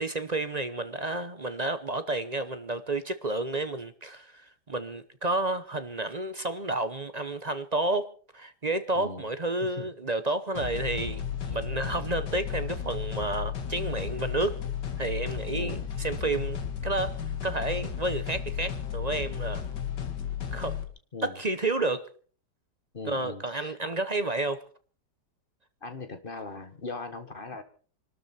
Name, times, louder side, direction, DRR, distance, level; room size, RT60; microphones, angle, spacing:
voice 1, 0.0-8.1 8.3-11.2 11.5-14.6 15.0-19.6 20.5-20.8 21.2-22.1 23.0-24.6, right 2 dB, 30° right, 0.8 m, -31 dB
voice 2, 8.9-9.3 9.6-9.9 15.5-15.9 21.1-21.4 22.9-23.8 25.8-27.6, left 3 dB, 30° left, 1.7 m, -39 dB
sound 1, 10.5-20.8, left 8 dB, 80° left, 2.3 m, -34 dB
25.5 x 13.0 x 4.4 m
omnidirectional pair, 1.8 m